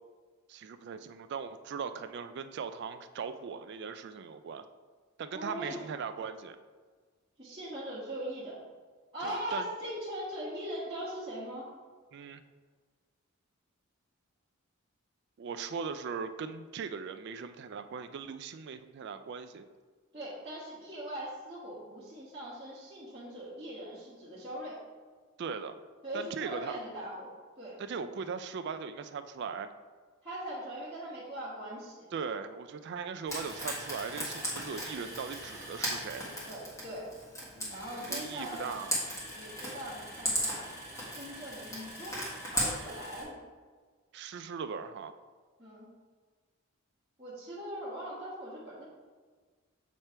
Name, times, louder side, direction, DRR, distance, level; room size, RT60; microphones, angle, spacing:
voice 1, 0.5-4.6 5.2-6.6 9.2-9.7 12.1-12.4 15.4-19.7 25.4-25.8 26.1-26.8 27.8-29.7 32.1-36.2 37.6-38.9 44.1-45.1, right 6 dB, 50° right, 9 dB, 0.3 m, -39 dB
voice 2, 5.3-5.8 7.4-8.6 9.1-11.7 20.1-24.8 26.0-27.8 30.2-32.0 36.5-37.1 37.7-38.7 39.3-40.7 41.1-43.4 45.6-45.9 47.2-48.8, right 1 dB, 25° right, -11 dB, 1.3 m, -40 dB
Frying (food), 33.3-43.2, equal, 15° left, 1.6 m, -37 dB
7.3 x 3.4 x 4.3 m, 1.5 s
head